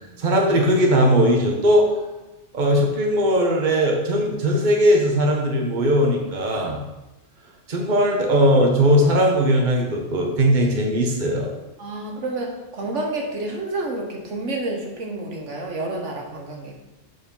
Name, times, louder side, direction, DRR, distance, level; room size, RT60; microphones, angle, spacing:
voice 1, 0.2-1.9 2.5-6.8 7.7-11.5, equal, 40° right, 0 dB, 1.3 m, -19 dB
voice 2, 11.8-16.8, right 2 dB, 80° right, 0 dB, 1.5 m, -29 dB
7.1 x 4.9 x 5.4 m, 1.0 s
omnidirectional pair, 1.2 m